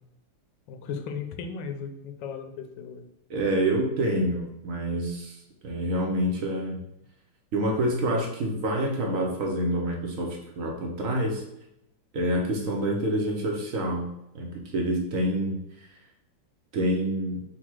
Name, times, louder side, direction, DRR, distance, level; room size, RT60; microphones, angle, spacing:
voice 1, 0.7-3.0, left 6 dB, 85° left, 7 dB, 1.3 m, -36 dB
voice 2, 3.3-6.8 7.5-11.4 12.1-15.9 16.7-17.4, right 1 dB, 60° right, 0 dB, 0.9 m, -27 dB
4.1 x 2.3 x 4.4 m, 0.81 s
omnidirectional pair, 2.0 m